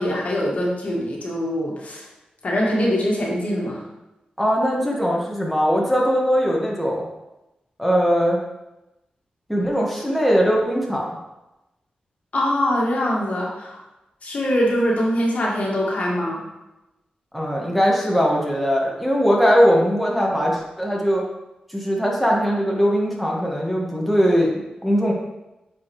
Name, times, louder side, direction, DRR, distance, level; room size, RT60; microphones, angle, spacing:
voice 1, 0.0-2.0 2.4-3.8 12.3-13.8 14.2-16.4, equal, 60° left, -3 dB, 1.7 m, -23 dB
voice 2, 4.4-7.0 7.8-8.4 9.5-11.1 17.3-21.2 21.7-25.1, equal, ahead, -3 dB, 1.3 m, -20 dB
8.3 x 4.7 x 3.0 m, 0.97 s
wide cardioid pair, 85°, 3 cm